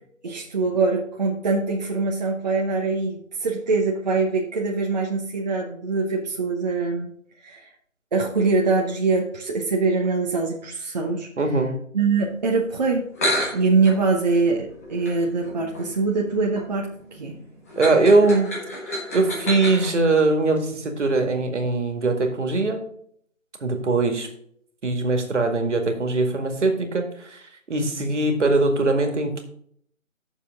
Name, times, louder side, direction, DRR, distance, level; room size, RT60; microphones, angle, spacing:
voice 1, 0.2-7.1 7.4-7.7 8.1-11.3 11.9-13.0 13.5-17.4, right 4 dB, 30° right, -1 dB, 1.0 m, -23 dB
voice 2, 11.4-11.7 17.8-18.6 19.1-22.8 23.6-24.3 24.8-27.4 27.7-29.4, right 3 dB, 60° right, 5 dB, 2.1 m, -21 dB
sound 1, 13.1-19.9, equal, 10° left, 1.0 m, -31 dB
10.0 x 6.8 x 3.6 m, 0.64 s
figure-of-eight pair, 160°, 40 cm